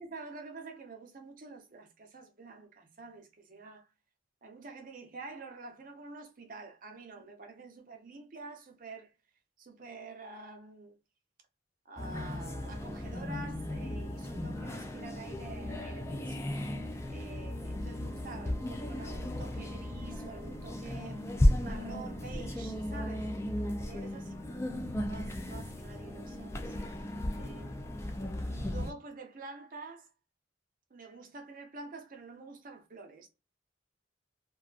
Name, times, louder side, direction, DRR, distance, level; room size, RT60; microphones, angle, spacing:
voice 1, 0.0-3.9 4.4-9.1 9.6-11.0 11.9-16.5 17.1-21.2 21.6-23.3 23.8-24.6 25.1-26.8 27.4-28.1 28.5-30.1 30.9-33.3, right 3 dB, 45° right, 0.6 m, -48 dB
sound 1, 12.0-28.9, left 1 dB, 15° left, 0.3 m, -35 dB
2.6 x 2.3 x 2.3 m
head